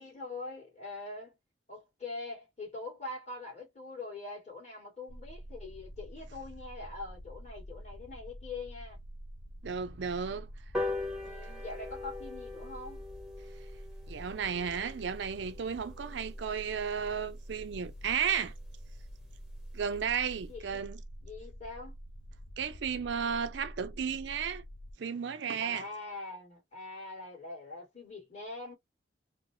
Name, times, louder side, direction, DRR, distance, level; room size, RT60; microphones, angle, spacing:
voice 1, 0.0-1.4 1.7-9.0 11.2-13.1 20.5-20.8 21.2-21.9 25.6-28.7, left 3 dB, 35° left, 2.0 m, -43 dB
sound 1, 5.1-24.9, equal, 70° left, 0.7 m, -47 dB
voice 2, 9.6-10.5 14.1-18.5 19.7-21.0 22.6-24.6 25.0-25.8, right 7 dB, 65° right, 0.4 m, -33 dB
sound 2, 10.7-17.5 17.9-18.0 18.3-18.4 18.7-18.8 19.1-19.2 19.5-19.8 20.2-20.3, left 2 dB, 5° right, 0.7 m, -41 dB
3.9 x 2.0 x 2.6 m
head